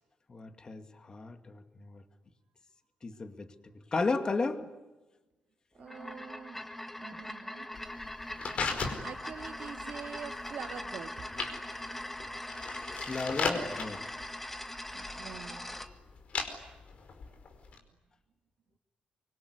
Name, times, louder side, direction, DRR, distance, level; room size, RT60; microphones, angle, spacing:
voice 1, 0.3-2.0 3.0-3.5 3.9-4.7 7.1-7.2 13.0-14.0, left 3 dB, 30° left, 8 dB, 2.3 m, -34 dB
sound 1, 5.8-15.9, left 1 dB, 10° left, 1.8 m, -41 dB
voice 2, 5.8-6.7 7.0-7.7 9.0-11.3 14.9-15.7 16.6-16.7, right 7 dB, 70° right, 6 dB, 2.0 m, -45 dB
sound 2, 7.7-17.8, left 4 dB, 55° left, 4.8 m, -38 dB
25.0 x 24.5 x 9.7 m, 1.1 s
cardioid pair, 130°, 3 cm